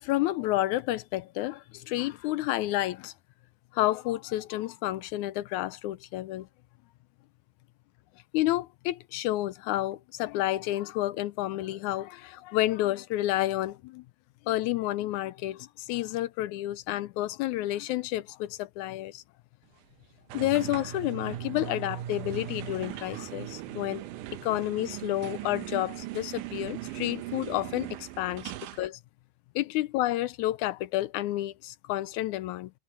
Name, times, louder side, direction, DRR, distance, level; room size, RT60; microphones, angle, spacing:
voice 1, 0.0-3.1 3.7-6.5 8.3-14.1 14.5-19.2 20.3-24.0 24.4-28.5 28.8-29.0 29.6-32.7, left 15 dB, 80° left, 1.9 m, -30 dB
sound 1, 20.3-28.9, right 14 dB, 85° right, 2.5 m, -39 dB
omnidirectional pair, 3.6 m